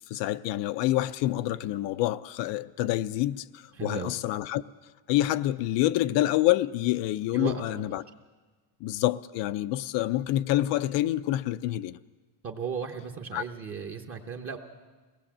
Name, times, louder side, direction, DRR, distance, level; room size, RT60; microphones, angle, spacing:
voice 1, 0.1-4.6 5.1-8.0 8.8-12.0 13.3-13.4, left 15 dB, 60° left, 0.6 m, -27 dB
voice 2, 3.7-4.1 7.3-7.8 12.4-14.6, right 6 dB, 25° right, 0.8 m, -35 dB
23.5 x 18.5 x 7.4 m
cardioid pair, 180°, 49 cm